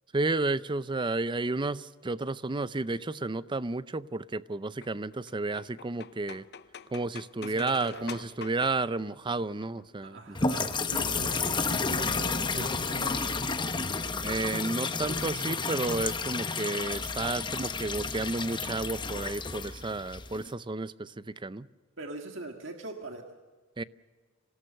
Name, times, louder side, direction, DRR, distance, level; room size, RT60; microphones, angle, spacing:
voice 1, 0.1-6.4 6.9-10.4 11.0-11.1 12.0-12.1 12.6-12.7 14.2-21.1 21.4-21.7 23.8-23.9, right 3 dB, 25° right, 16 dB, 0.5 m, -32 dB
sound 1, 4.8-10.1 11.1-11.6 12.8-13.5 13.8-13.9 14.1-14.2 14.4-14.8, left 6 dB, 55° left, 0.7 m, -47 dB
voice 2, 7.4-8.2 10.0-13.8 22.0-23.3, right 2 dB, 65° right, 4 dB, 1.8 m, -41 dB
sound 2, 10.3-20.5, left 4 dB, 25° left, 1.0 m, -31 dB
26.5 x 18.0 x 6.7 m, 1.4 s
head